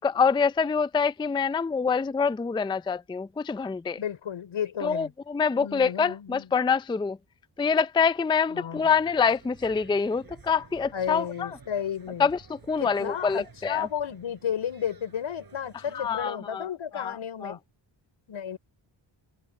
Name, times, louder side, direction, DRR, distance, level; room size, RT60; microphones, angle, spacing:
voice 1, 0.0-4.0 4.8-7.2 7.6-11.5 12.2-13.9 15.9-16.7 16.9-17.1 17.4-17.6, left 5 dB, 10° left, 0.4 m, -26 dB
voice 2, 4.0-5.1 5.6-6.5 8.5-8.9 10.9-12.3 12.8-17.6 18.3-18.6, left 9 dB, 85° left, 5.3 m, -33 dB
sound 1, 8.8-16.3, right 5 dB, 50° right, 6.3 m, -53 dB
cardioid pair, 80°, 46 cm